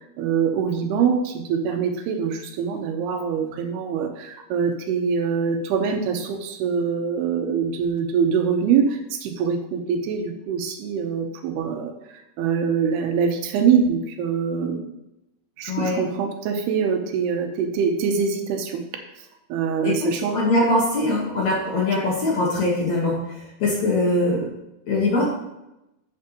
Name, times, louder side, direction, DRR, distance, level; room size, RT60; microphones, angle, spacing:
voice 1, 0.2-14.8 15.6-20.4, right 6 dB, 80° right, 4 dB, 2.8 m, -24 dB
voice 2, 15.7-16.0 19.8-24.5 24.9-25.3, left 2 dB, 60° left, -3 dB, 2.2 m, -22 dB
11.0 x 7.8 x 3.0 m, 0.90 s
omnidirectional pair, 4.7 m